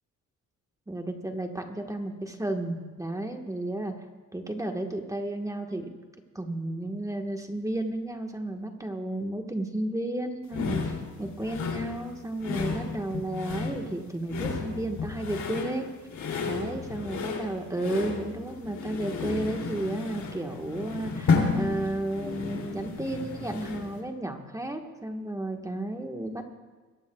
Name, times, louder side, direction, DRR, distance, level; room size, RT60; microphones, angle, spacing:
voice 1, 0.9-3.9 4.3-5.9 6.3-15.9 16.4-26.5, right 1 dB, 10° right, 3 dB, 1.4 m, -33 dB
sound 1, 10.5-24.0, left 4 dB, 70° left, 2.8 m, -32 dB
22.0 x 15.5 x 2.3 m, 1.4 s
cardioid pair, 90°, 30 cm